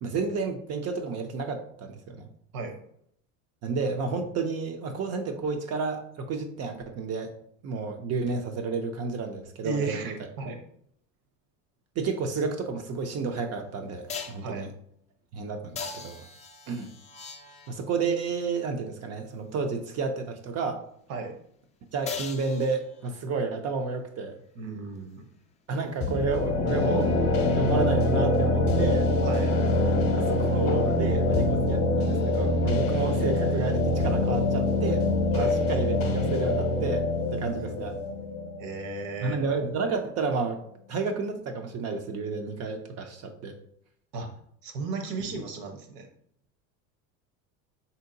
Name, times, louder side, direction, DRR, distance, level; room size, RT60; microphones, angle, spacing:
voice 1, 0.0-2.3 3.6-7.3 7.6-10.1 12.0-14.7 15.3-16.2 16.7-16.9 17.7-20.8 21.9-24.4 25.7-27.1 27.5-29.1 30.2-35.1 35.4-37.0 37.3-38.0 39.2-40.6 40.9-43.5, right 4 dB, 40° right, 5 dB, 0.5 m, -31 dB
voice 2, 9.6-10.6 14.4-14.7 21.1-21.3 24.5-25.2 29.2-29.5 35.3-35.5 37.4-38.0 38.6-39.4 44.1-44.3 44.6-46.1, right 4 dB, 60° right, 4 dB, 0.9 m, -35 dB
sound 1, 13.0-13.1 14.1-14.5 15.8-17.9 22.1-23.2 27.0-27.1, left 5 dB, 20° left, 0.4 m, -39 dB
sound 2, 26.0-39.7, left 1 dB, 40° left, 0.8 m, -25 dB
3.6 x 2.8 x 2.6 m, 0.68 s
supercardioid pair, 95°, 39 cm